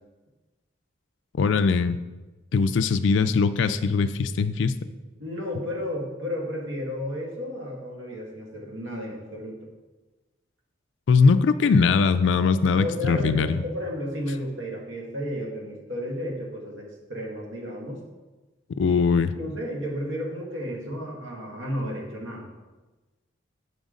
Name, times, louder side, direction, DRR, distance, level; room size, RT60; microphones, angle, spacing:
voice 1, 1.4-2.0 2.5-4.8 11.1-13.6 18.8-19.3, left 5 dB, 70° left, 11 dB, 0.4 m, -21 dB
voice 2, 5.2-9.7 12.8-18.0 18.9-19.0 19.4-22.5, equal, 85° right, -1 dB, 1.6 m, -33 dB
7.9 x 5.2 x 3.8 m, 1.2 s
head